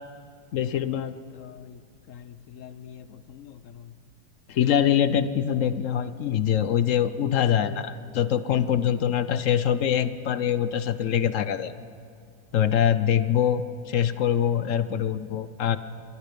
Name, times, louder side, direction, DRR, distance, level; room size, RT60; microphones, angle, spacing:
voice 1, 0.5-1.8 2.1-3.9 4.5-11.7 12.5-15.8, left 9 dB, 65° left, 13 dB, 0.8 m, -25 dB
27.0 x 21.0 x 5.3 m, 2.3 s
omnidirectional pair, 2.0 m